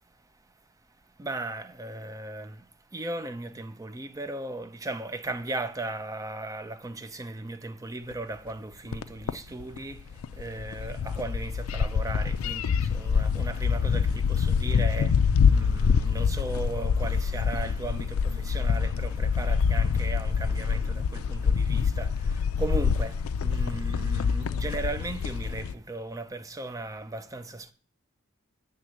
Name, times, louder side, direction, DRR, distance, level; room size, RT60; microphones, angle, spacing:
voice 1, 1.2-27.7, right 2 dB, 15° right, 0.5 m, -37 dB
sound 1, 8.1-8.2 8.9-9.0 9.3-9.4 9.6-25.7, left 6 dB, 75° left, 0.4 m, -26 dB
7.6 x 3.5 x 6.4 m
head